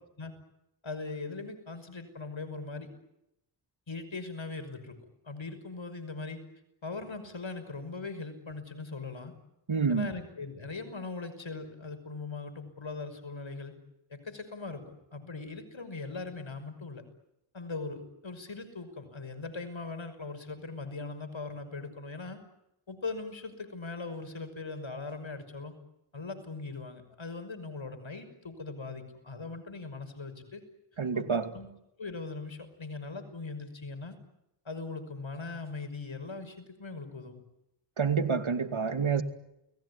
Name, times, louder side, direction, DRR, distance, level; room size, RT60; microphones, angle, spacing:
voice 1, 0.8-2.9 3.9-5.0 5.2-6.4 6.8-9.3 9.9-13.7 14.1-14.8 15.1-17.0 17.5-22.4 22.9-25.8 26.1-30.6 31.1-31.7 32.0-34.1 34.6-37.4, left 3 dB, 70° left, 5.9 m, -40 dB
voice 2, 9.7-10.1 31.0-31.5 38.0-39.2, right 5 dB, 75° right, 2.5 m, -28 dB
30.0 x 20.5 x 9.8 m
cardioid pair, 40°, 48 cm